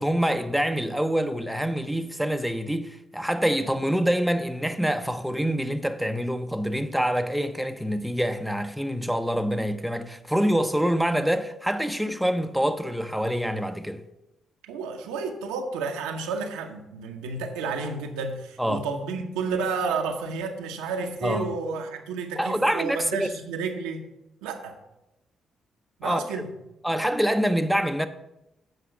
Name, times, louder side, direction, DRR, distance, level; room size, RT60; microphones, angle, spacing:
voice 1, 0.0-14.0 18.6-18.9 21.2-21.5 22.4-23.3 26.0-26.2 26.8-28.1, equal, ahead, 0.6 m, -26 dB
voice 2, 14.6-24.0 24.4-24.8 26.0-26.5, right 4 dB, 85° right, 0.8 m, -31 dB
8.0 x 5.0 x 5.7 m
hypercardioid pair, 50°, 0 cm